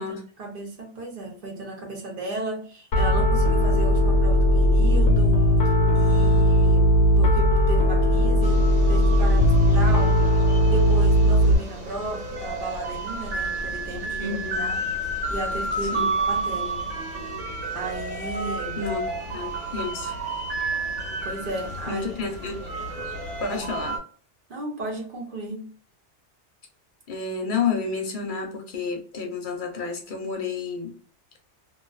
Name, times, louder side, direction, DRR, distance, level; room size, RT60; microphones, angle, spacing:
voice 1, 0.4-5.5 5.9-10.3 10.7-14.3 14.6-14.8 15.3-16.8 17.7-18.8 21.2-22.1 23.5-23.7 24.5-25.7, right 2 dB, 50° right, 0.9 m, -34 dB
Piano, 2.9-11.6, equal, 80° left, 1.0 m, -18 dB
sound 1, 8.4-24.0, right 2 dB, 85° right, 1.2 m, -31 dB
voice 2, 14.2-14.7 15.9-16.1 18.8-20.2 21.9-22.6 23.4-24.0 27.1-30.9, left 5 dB, 50° left, 0.8 m, -30 dB
2.5 x 2.3 x 2.3 m
omnidirectional pair, 1.2 m